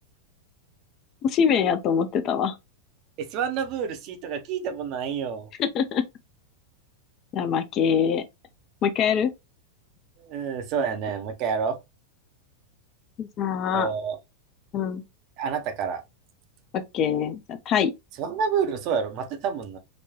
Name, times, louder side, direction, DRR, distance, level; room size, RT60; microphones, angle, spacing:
voice 1, 1.2-2.6 5.6-6.0 7.3-8.2 8.8-9.3 13.2-13.9 14.7-15.0 16.7-17.9, left 7 dB, 35° left, 0.4 m, -24 dB
voice 2, 3.3-5.5 10.2-11.8 13.7-14.2 15.4-16.0 18.2-19.8, right 6 dB, 40° right, 0.6 m, -28 dB
4.0 x 2.2 x 2.8 m
figure-of-eight pair, 90°, 0 cm